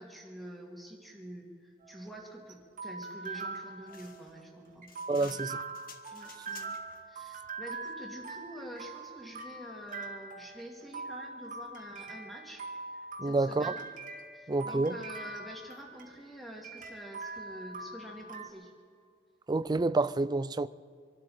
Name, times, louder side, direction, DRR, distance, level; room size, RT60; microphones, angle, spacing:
voice 1, 0.0-4.9 6.1-6.8 7.1-12.7 12.9-13.9 14.3-18.7, right 1 dB, ahead, 2.7 m, -47 dB
sound 1, 1.8-18.5, right 3 dB, 45° right, 1.9 m, -43 dB
sound 2, 3.9-7.0, left 6 dB, 50° left, 1.2 m, -53 dB
voice 2, 5.1-5.6 13.2-13.7 14.5-14.9 19.5-20.7, right 3 dB, 20° right, 0.4 m, -28 dB
26.0 x 12.5 x 4.4 m
head